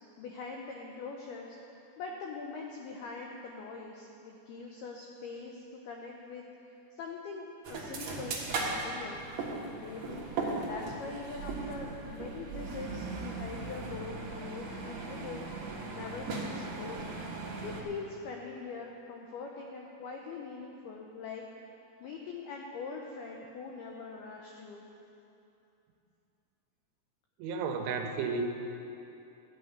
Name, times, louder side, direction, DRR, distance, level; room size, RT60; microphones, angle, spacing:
voice 1, 0.2-1.6 2.0-9.3 9.6-10.2 10.6-15.5 15.9-17.2 17.6-21.4 22.0-24.8, left 4 dB, 85° left, 0 dB, 2.2 m, -43 dB
sound 1, 7.6-17.8, right 3 dB, 60° right, 1.9 m, -38 dB
voice 2, 27.4-28.5, right 4 dB, 80° right, 4 dB, 3.3 m, -32 dB
13.0 x 6.4 x 9.3 m, 2.8 s
omnidirectional pair, 5.6 m